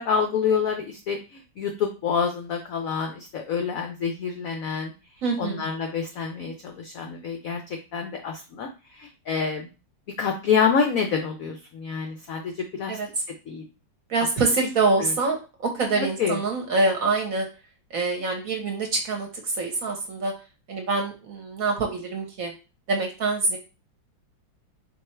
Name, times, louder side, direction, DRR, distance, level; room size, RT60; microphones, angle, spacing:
voice 1, 0.0-4.9 5.4-7.6 7.9-9.7 10.2-13.0 13.5-13.6 15.0-15.1 16.0-16.4, left 6 dB, 75° left, 4 dB, 0.8 m, -27 dB
voice 2, 5.2-5.6 12.9-13.1 14.1-17.5 17.9-20.3 20.7-22.5 22.9-23.6, right 3 dB, 55° right, 2 dB, 1.1 m, -25 dB
4.4 x 2.5 x 4.3 m, 0.31 s
omnidirectional pair, 2.1 m